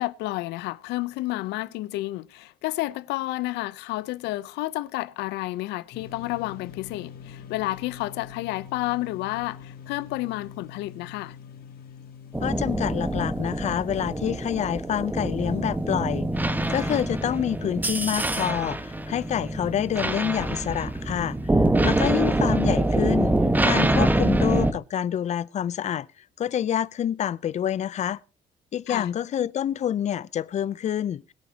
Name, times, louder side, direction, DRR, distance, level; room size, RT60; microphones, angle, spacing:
voice 1, 0.0-11.4 28.9-29.1, left 18 dB, 90° left, 0.7 m, -30 dB
sound 1, 5.9-19.4, left 7 dB, 60° left, 2.8 m, -46 dB
sound 2, 12.3-24.7, right 1 dB, 10° right, 1.4 m, -25 dB
voice 2, 12.4-16.3 16.7-21.4 21.8-23.3 23.6-26.1 26.4-28.2 28.7-31.2, left 10 dB, 45° left, 0.6 m, -27 dB
21.5 x 9.5 x 2.9 m
cardioid pair, 110°, 17 cm